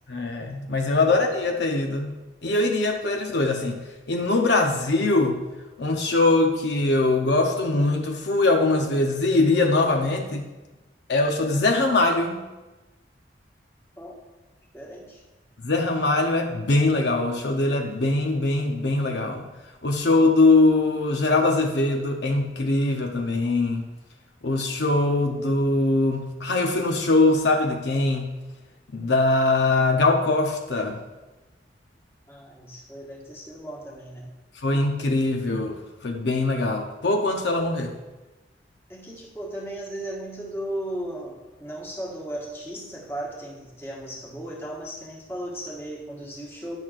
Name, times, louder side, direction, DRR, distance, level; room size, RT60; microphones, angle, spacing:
voice 1, 0.1-3.8 4.1-5.4 5.8-10.5 11.1-12.5 15.6-19.4 19.8-23.9 24.4-28.3 28.9-31.0 34.6-35.8 36.0-37.9, left 2 dB, 70° left, 2 dB, 0.7 m, -22 dB
voice 2, 14.7-15.2 32.3-34.3 38.9-46.8, right 1 dB, 15° left, -3 dB, 1.4 m, -36 dB
10.5 x 6.0 x 2.4 m, 1.1 s
head